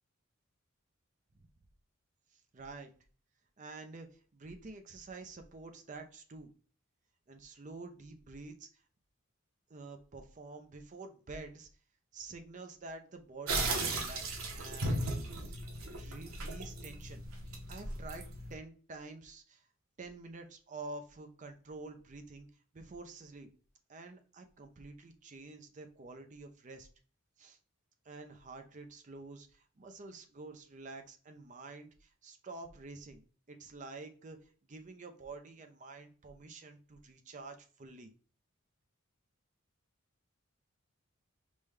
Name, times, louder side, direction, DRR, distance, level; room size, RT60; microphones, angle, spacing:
voice 1, 2.3-2.9 3.6-6.5 7.3-8.8 9.7-11.7 12.1-15.6 15.9-17.2 17.7-19.6 20.0-22.5 22.7-23.5 23.9-26.9 27.4-27.6 28.1-33.2 33.5-38.1, right 3 dB, 35° right, 6 dB, 0.5 m, -48 dB
sound 1, 13.5-18.5, right 2 dB, 85° right, 0.8 m, -36 dB
5.2 x 2.2 x 3.2 m, 0.40 s
head